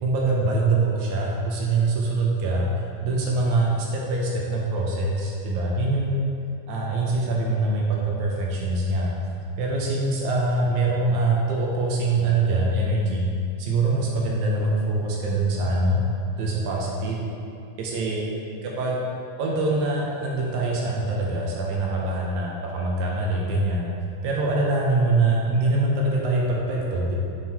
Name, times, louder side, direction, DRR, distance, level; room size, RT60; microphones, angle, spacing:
voice 1, 0.0-2.7 3.0-6.3 6.7-9.1 9.6-13.3 13.6-16.0 16.4-17.2 17.8-18.3 18.6-19.0 19.4-23.9 24.2-27.2, right 2 dB, 85° right, -2 dB, 1.7 m, -24 dB
7.2 x 3.5 x 4.4 m, 2.5 s
omnidirectional pair, 4.3 m